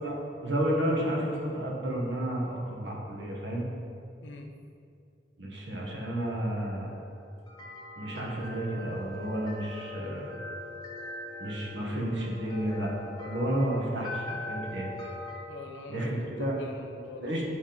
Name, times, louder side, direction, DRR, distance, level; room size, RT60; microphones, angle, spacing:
voice 1, 0.0-3.6 5.4-6.9 8.0-10.4 11.4-12.9 13.2-14.9 15.9-16.6 17.2-17.4, right 1 dB, 85° right, -2 dB, 1.5 m, -31 dB
sound 1, 6.8-15.4, left 2 dB, 25° left, 0.8 m, -42 dB
voice 2, 15.5-16.1 16.4-17.4, left 3 dB, 85° left, 4 dB, 0.7 m, -43 dB
8.5 x 3.7 x 5.1 m, 2.4 s
head